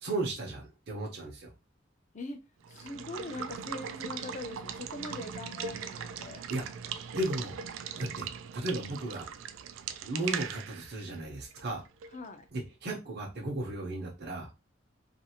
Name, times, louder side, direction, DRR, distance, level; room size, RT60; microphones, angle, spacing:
voice 1, 0.0-1.5 6.5-6.6 7.1-7.5 8.0-8.3 8.5-9.3 10.0-11.8 12.5-14.5, right 2 dB, 55° right, 0.8 m, -35 dB
Water / Water tap faucet / Liquid, 2.6-12.3, right 7 dB, 70° right, 0.3 m, -40 dB
voice 2, 2.7-6.4 12.1-12.4, left 2 dB, 40° left, 0.5 m, -42 dB
2.6 x 2.4 x 2.8 m
head